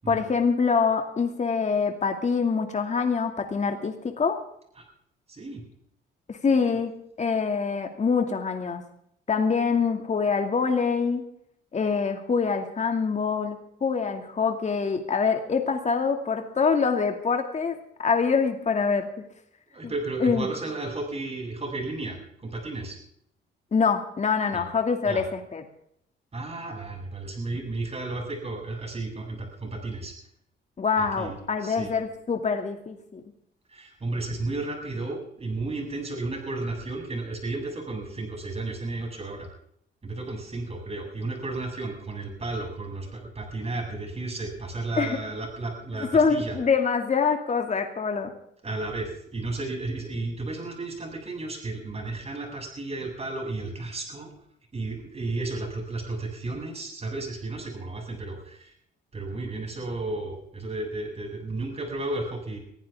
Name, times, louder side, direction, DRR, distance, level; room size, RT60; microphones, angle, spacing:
voice 1, 0.1-4.4 6.3-8.8 9.3-11.2 11.7-19.3 20.2-20.5 23.7-25.6 30.8-33.2 45.0-45.2 46.1-48.3, left 5 dB, 35° left, 5 dB, 2.4 m, -25 dB
voice 2, 5.3-5.6 6.5-6.7 19.7-23.0 24.5-24.6 25.0-25.2 26.3-30.1 31.0-31.9 33.7-39.5 40.0-46.6 48.6-54.3 54.7-58.7 59.1-62.6, right 2 dB, 30° right, 2 dB, 7.8 m, -33 dB
22.5 x 15.0 x 3.6 m, 0.72 s
cardioid pair, 90°, 20 cm